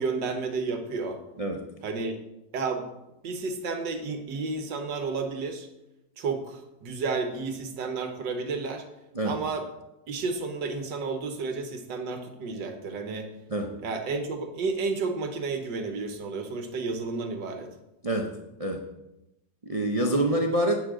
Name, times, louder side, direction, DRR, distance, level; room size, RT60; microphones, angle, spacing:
voice 1, 0.0-1.2 1.8-2.1 2.5-2.9 3.2-5.7 6.2-8.8 9.2-9.6 10.1-13.3 13.8-17.7, right 4 dB, 75° right, 6 dB, 1.9 m, -31 dB
voice 2, 19.6-20.8, right 1 dB, 45° right, 2 dB, 0.4 m, -26 dB
11.5 x 8.9 x 3.8 m, 0.92 s
omnidirectional pair, 2.0 m